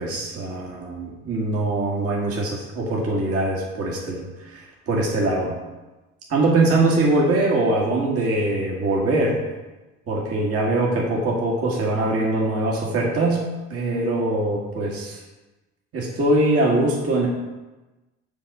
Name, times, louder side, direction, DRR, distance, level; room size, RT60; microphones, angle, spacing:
voice 1, 0.0-5.6 6.3-9.4 10.1-13.4 13.7-15.2 15.9-17.3, right 2 dB, 40° right, -2 dB, 1.8 m, -22 dB
7.4 x 4.4 x 5.4 m, 1.1 s
figure-of-eight pair, 55°, 37 cm